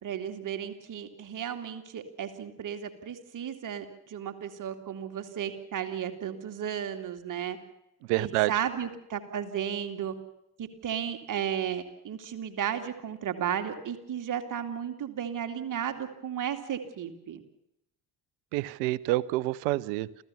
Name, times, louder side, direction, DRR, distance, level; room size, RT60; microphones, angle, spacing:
voice 1, 0.0-7.6 8.2-10.1 10.6-17.4, right 9 dB, 45° right, 6 dB, 2.6 m, -34 dB
voice 2, 8.1-8.5 18.5-20.2, right 17 dB, 65° right, 21 dB, 0.9 m, -28 dB
28.0 x 16.0 x 7.1 m, 0.83 s
figure-of-eight pair, 50°, 44 cm